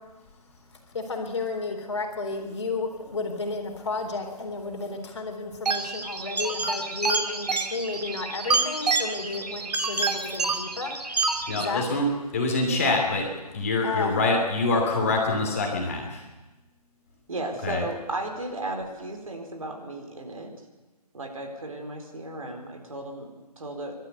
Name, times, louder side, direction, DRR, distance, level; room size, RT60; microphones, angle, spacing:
voice 1, 0.7-11.8 13.8-14.2, left 3 dB, 45° left, 3 dB, 3.9 m, -32 dB
sound 1, 5.7-11.7, right 3 dB, 75° right, 2.6 m, -28 dB
voice 2, 11.5-16.3 17.6-17.9, left 2 dB, 20° left, 1 dB, 2.7 m, -25 dB
voice 3, 17.3-20.5 21.1-23.9, right 2 dB, 55° right, 3 dB, 4.2 m, -35 dB
29.0 x 12.5 x 8.2 m, 1.1 s
hypercardioid pair, 175°, 21 cm